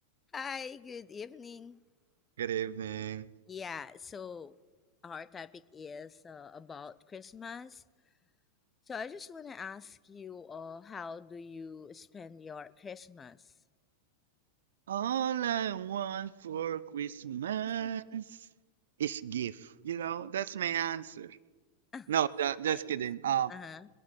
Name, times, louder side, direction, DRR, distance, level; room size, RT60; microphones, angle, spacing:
voice 1, 0.3-1.8 3.5-4.5 5.0-7.8 8.9-13.4 17.8-17.9 21.9-22.1 22.7-23.0 23.5-23.9, left 6 dB, 20° left, 17 dB, 0.5 m, -44 dB
voice 2, 2.4-3.3 14.9-18.2 19.0-21.4 22.1-23.5, right 10 dB, 60° right, 19 dB, 0.4 m, -33 dB
22.0 x 9.3 x 5.6 m, 1.4 s
figure-of-eight pair, 90°, 0 cm